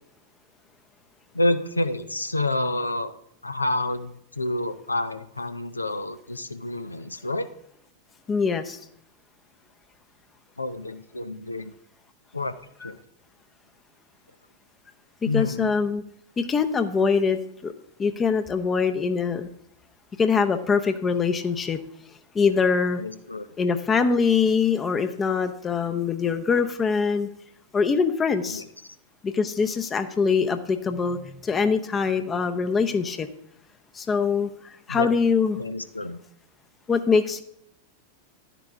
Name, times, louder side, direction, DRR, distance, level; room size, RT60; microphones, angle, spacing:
voice 1, 1.3-3.1 3.4-7.5 10.6-11.7 12.3-12.5 12.8-13.0 15.3-15.7 23.0-23.5 28.5-28.6 34.9-35.1 35.5-36.2, left 2 dB, 80° left, 11 dB, 0.6 m, -28 dB
voice 2, 8.3-8.8 12.8-12.9 15.3-16.0 16.4-17.7 18.0-19.5 20.2-21.8 22.3-23.0 23.6-27.3 27.7-28.6 29.2-33.3 33.9-34.5 34.9-35.6 36.9-37.4, left 5 dB, 20° left, 8 dB, 0.7 m, -23 dB
10.5 x 10.0 x 3.5 m, 0.71 s
figure-of-eight pair, 90°, 0 cm